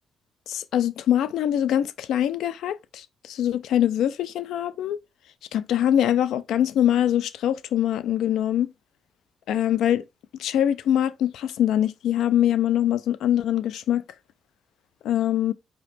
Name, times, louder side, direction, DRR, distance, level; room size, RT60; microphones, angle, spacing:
voice 1, 0.5-5.0 5.5-8.7 9.5-10.0 10.3-14.0 15.0-15.5, left 11 dB, 80° left, 0.3 m, -23 dB
4.8 x 3.0 x 3.2 m
cardioid pair, 75°, 0 cm